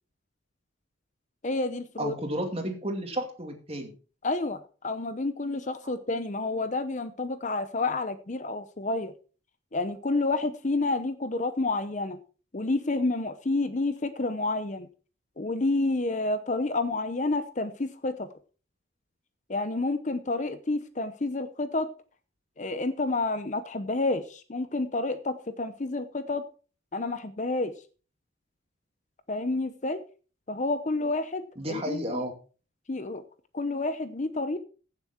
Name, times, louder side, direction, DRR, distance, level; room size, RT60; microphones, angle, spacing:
voice 1, 1.4-2.1 4.2-9.1 9.7-12.2 12.5-14.9 15.4-18.3 19.5-21.9 22.6-26.4 26.9-27.7 29.3-30.0 30.5-32.2 32.9-33.2 33.5-34.6, left 2 dB, 35° left, 12 dB, 0.7 m, -29 dB
voice 2, 2.0-3.9 31.6-32.3, right 1 dB, 30° right, 4 dB, 2.5 m, -32 dB
16.0 x 7.2 x 4.4 m, 0.37 s
head